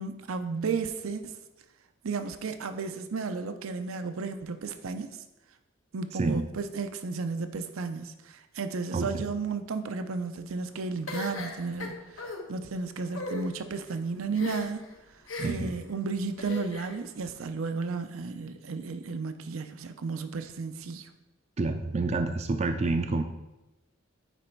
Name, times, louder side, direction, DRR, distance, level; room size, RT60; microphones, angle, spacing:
voice 1, 0.0-1.4 2.0-5.2 5.9-14.8 15.4-21.1, right 4 dB, 90° right, 9 dB, 0.5 m, -33 dB
voice 2, 8.9-9.2 15.4-15.8 21.6-23.2, right 3 dB, 30° right, 7 dB, 0.4 m, -28 dB
sound 1, 11.1-12.4 13.1-13.4 14.3-14.8 15.3-15.7 16.4-17.0, left 2 dB, 80° left, 1.1 m, -37 dB
9.2 x 3.3 x 4.5 m, 1.0 s
head